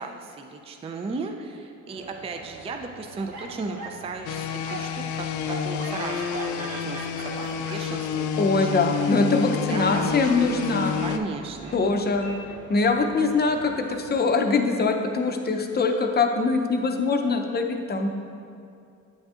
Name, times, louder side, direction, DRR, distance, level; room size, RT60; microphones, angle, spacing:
voice 1, 0.0-8.9 9.5-10.5 10.7-11.8, right 3 dB, 20° right, 4 dB, 0.4 m, -36 dB
sound 1, 1.9-14.1, right 2 dB, 55° right, 1.0 m, -44 dB
sound 2, 3.3-4.0 4.6-5.0 5.5-6.0 6.3-6.5 7.1-7.9 9.1-9.3, right 3 dB, 75° right, 1.1 m, -39 dB
sound 3, 4.3-11.2, left 8 dB, 75° left, 0.4 m, -29 dB
voice 2, 8.4-11.0 11.7-12.3 12.7-18.1, left 3 dB, 35° left, 4 dB, 0.6 m, -23 dB
8.7 x 6.2 x 2.4 m, 2.4 s
cardioid pair, 90°, 30 cm